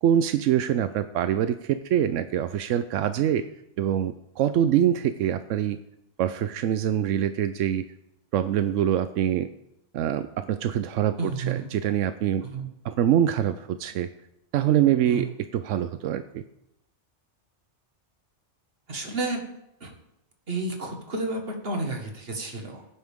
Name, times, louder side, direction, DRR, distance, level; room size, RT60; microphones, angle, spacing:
voice 1, 0.0-3.4 3.8-5.8 6.2-7.9 8.3-9.5 9.9-12.4 12.8-14.1 14.5-16.4, right 10 dB, 90° right, 11 dB, 0.9 m, -24 dB
voice 2, 11.2-11.7 12.4-12.7 15.0-15.3 18.9-19.4 19.8-19.9 20.5-22.9, right 3 dB, 55° right, 3 dB, 1.9 m, -31 dB
16.0 x 9.4 x 3.6 m, 0.81 s
omnidirectional pair, 1.2 m